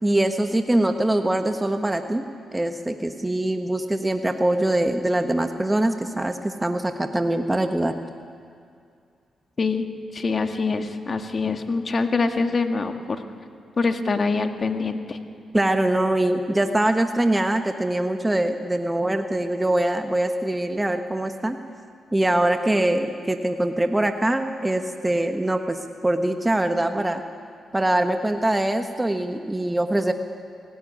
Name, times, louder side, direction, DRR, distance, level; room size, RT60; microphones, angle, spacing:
voice 1, 0.0-2.2 2.5-7.9 15.5-21.6 22.1-25.8 26.0-27.2 27.7-30.1, right 1 dB, 15° right, 6 dB, 1.3 m, -23 dB
voice 2, 9.6-9.9 10.1-13.2 13.8-15.2, left 4 dB, 45° left, 6 dB, 1.9 m, -24 dB
24.5 x 16.5 x 10.0 m, 2.3 s
supercardioid pair, 55°, 0 cm